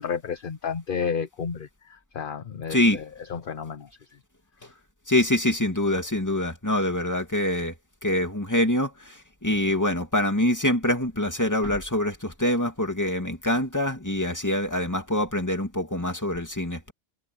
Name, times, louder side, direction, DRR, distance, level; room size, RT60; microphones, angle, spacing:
voice 1, 0.0-3.0 3.3-3.9, left 6 dB, 50° left, 1.0 m, -31 dB
voice 2, 2.7-3.0 5.1-7.7 8.0-9.2 9.4-16.9, left 1 dB, 15° left, 2.5 m, -25 dB
omnidirectional pair, 1.2 m